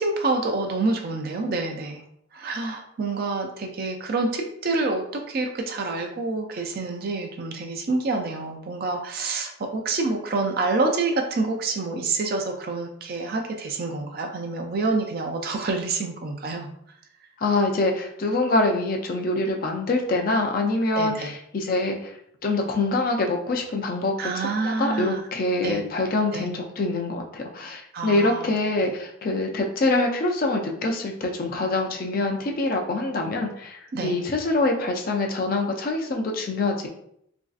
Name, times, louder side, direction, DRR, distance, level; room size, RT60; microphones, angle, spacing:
voice 1, 0.0-2.0 2.3-16.7 20.9-21.3 24.2-25.2 25.6-25.8 26.3-26.5 27.9-28.5 33.9-34.2, right 3 dB, 45° right, 3 dB, 0.4 m, -27 dB
voice 2, 17.4-22.1 22.4-33.8 34.0-36.9, left 2 dB, 45° left, 2 dB, 0.4 m, -25 dB
3.0 x 2.6 x 2.4 m, 0.71 s
head